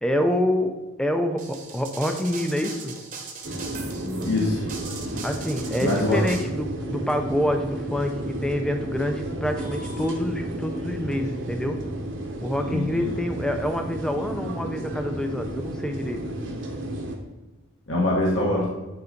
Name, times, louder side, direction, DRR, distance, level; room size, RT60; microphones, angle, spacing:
voice 1, 0.0-0.7 1.0-2.9 5.2-11.8 12.4-16.2, left 1 dB, 5° left, 5 dB, 0.6 m, -27 dB
sound 1, 1.4-6.4, right 5 dB, 40° right, 1.1 m, -39 dB
sound 2, 3.4-17.2, right 1 dB, 60° right, 1.2 m, -32 dB
voice 2, 4.2-4.6 5.8-6.2 12.7-13.1 17.9-18.7, left 2 dB, 60° left, -4 dB, 1.5 m, -23 dB
sound 3, 6.2-11.2, right 2 dB, 75° right, 2.1 m, -45 dB
9.5 x 4.0 x 5.2 m, 1.1 s
head